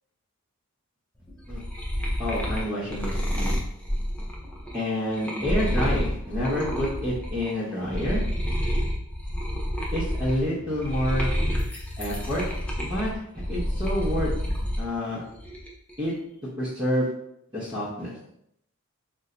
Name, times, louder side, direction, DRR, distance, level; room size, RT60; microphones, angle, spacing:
sound 1, 1.3-7.5 7.8-14.8 15.2-15.9, equal, 5° left, 0.4 m, -29 dB
voice 1, 2.2-3.5 4.7-8.2 9.9-11.3 12.0-12.4 12.8-13.2 13.5-14.3 14.8-15.2 16.0-16.1 16.6-17.1 17.5-18.1, equal, 20° right, -10 dB, 0.8 m, -28 dB
2.6 x 2.2 x 3.8 m, 0.75 s
head